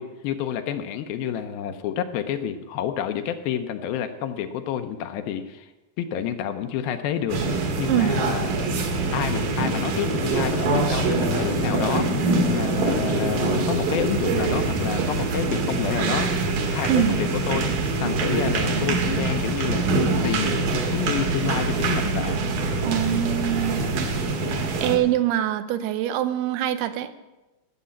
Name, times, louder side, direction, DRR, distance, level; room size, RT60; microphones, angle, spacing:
voice 1, 0.0-5.7 6.0-7.4 7.8-8.7 9.1-12.1 12.5-16.3 16.6-17.7 18.0-19.9 20.2-22.4, left 9 dB, 80° left, 8 dB, 2.4 m, -29 dB
sound 1, 7.3-25.0, right 3 dB, 60° right, 2.8 m, -24 dB
voice 2, 22.8-23.9 24.8-27.1, right 12 dB, 85° right, 11 dB, 2.7 m, -24 dB
14.0 x 6.7 x 8.5 m, 1.1 s
omnidirectional pair, 4.5 m